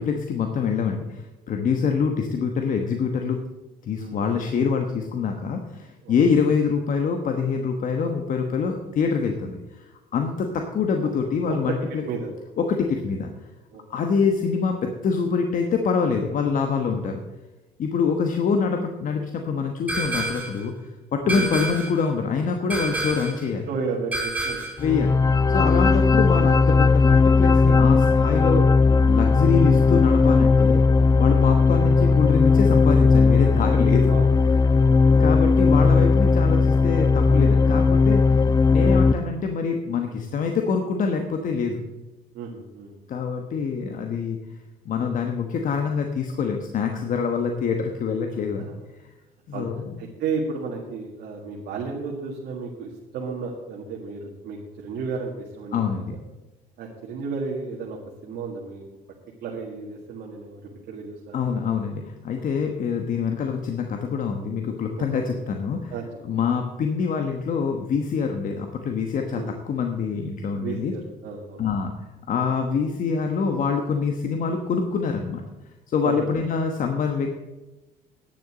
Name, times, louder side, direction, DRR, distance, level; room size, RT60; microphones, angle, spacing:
voice 1, 0.0-3.4 3.8-12.0 12.6-13.3 13.9-17.2 17.8-20.7 21.1-23.7 24.8-25.1 25.5-28.7 29.1-30.8 31.2-34.1 35.2-38.2 38.7-41.8 43.1-44.4 44.8-48.7 49.5-50.0 55.7-56.2 61.3-65.9 66.2-70.9 71.6-75.4 75.9-77.3, left 5 dB, 50° left, 4 dB, 1.2 m, -25 dB
voice 2, 3.9-4.4 6.0-6.1 11.5-11.8 12.1-12.3 13.7-13.8 21.2-21.4 22.9-23.1 23.7-24.6 31.4-31.6 34.1-34.3 34.7-35.3 38.8-39.0 42.3-42.9 49.5-49.7 50.0-56.2 56.8-58.8 59.4-61.6 62.5-62.6 65.0-65.1 65.9-66.0 69.3-69.6 70.5-71.6 76.0-76.3, right 5 dB, 70° right, -2 dB, 2.0 m, -33 dB
sound 1, 19.9-20.6 21.3-22.0 22.7-23.4 24.1-24.8, right 2 dB, 10° right, 4.1 m, -28 dB
sound 2, 24.8-39.1, left 4 dB, 20° left, 0.4 m, -17 dB
10.0 x 6.8 x 7.6 m, 1.1 s
cardioid pair, 110°, 17 cm